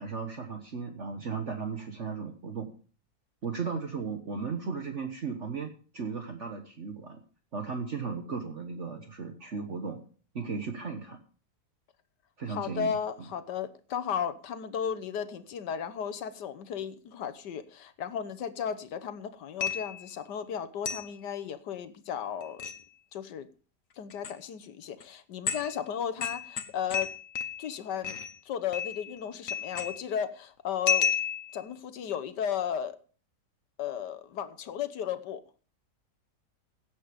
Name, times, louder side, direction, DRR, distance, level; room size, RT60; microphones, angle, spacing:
voice 1, 0.0-2.7 3.4-7.2 7.5-10.0 10.3-11.2 12.4-12.9 13.2-13.3, right 5 dB, 45° right, 5 dB, 1.5 m, -36 dB
voice 2, 12.5-22.6 23.1-23.5 24.0-27.1 27.6-28.2 28.4-31.1 31.5-33.0 33.8-35.4, left 8 dB, 85° left, 12 dB, 1.6 m, -35 dB
sound 1, 19.6-20.1 20.9-21.1 22.4-22.8 24.1-24.3 25.0-25.1 25.5-25.8 26.2-27.7 28.0-28.4 28.7-29.2 29.5-30.1 30.9-31.6, left 6 dB, 55° left, 1.6 m, -31 dB
16.5 x 8.2 x 5.1 m, 0.39 s
omnidirectional pair, 1.8 m